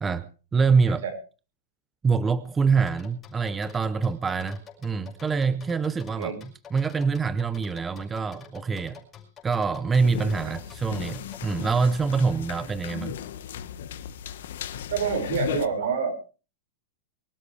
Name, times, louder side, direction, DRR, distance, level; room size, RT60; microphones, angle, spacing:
voice 1, 0.0-1.0 2.0-9.0 9.4-13.2, right 5 dB, 10° right, 13 dB, 0.7 m, -25 dB
sound 1, 2.9-11.6, left 7 dB, 15° left, 5.5 m, -47 dB
sound 2, 10.0-15.7, left 10 dB, 75° left, 1.3 m, -36 dB
voice 2, 14.9-16.3, right 6 dB, 80° right, 5 dB, 5.5 m, -28 dB
24.0 x 13.0 x 3.3 m, 0.35 s
supercardioid pair, 165°, 0 cm